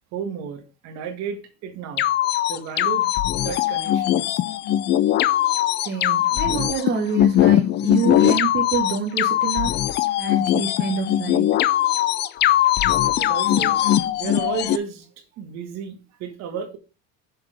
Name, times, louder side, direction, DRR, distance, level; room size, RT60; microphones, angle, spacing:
voice 1, 0.1-2.1 2.5-3.1 3.4-4.4 13.1-13.8 14.2-16.8, right 7 dB, 55° right, 7 dB, 1.6 m, -33 dB
sound 1, 2.0-14.8, left 12 dB, 35° left, 0.4 m, -20 dB
voice 2, 5.9-9.8 10.2-11.5, right 6 dB, 35° right, 2 dB, 1.1 m, -27 dB
6.8 x 4.4 x 4.9 m, 0.32 s
cardioid pair, 140°, 31 cm